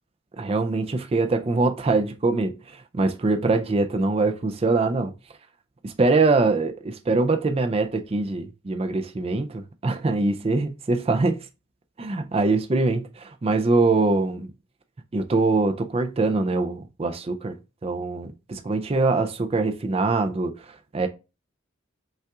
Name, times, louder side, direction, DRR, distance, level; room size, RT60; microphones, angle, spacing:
voice 1, 0.4-5.1 5.8-11.4 12.0-14.5 15.1-17.5 17.8-21.1, right 3 dB, 30° right, 0.4 m, -23 dB
5.5 x 2.4 x 3.5 m
head